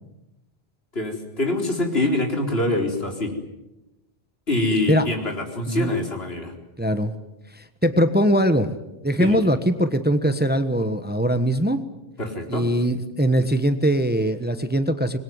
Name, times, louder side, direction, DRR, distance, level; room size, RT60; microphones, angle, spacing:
voice 1, 0.9-3.3 4.5-6.5 9.2-9.4 12.2-12.7, left 2 dB, 70° left, 2 dB, 4.4 m, -24 dB
voice 2, 6.8-7.1 7.5-8.7 9.0-11.8 12.5-15.2, equal, 10° right, 9 dB, 1.2 m, -21 dB
26.0 x 21.5 x 9.5 m, 0.96 s
omnidirectional pair, 1.1 m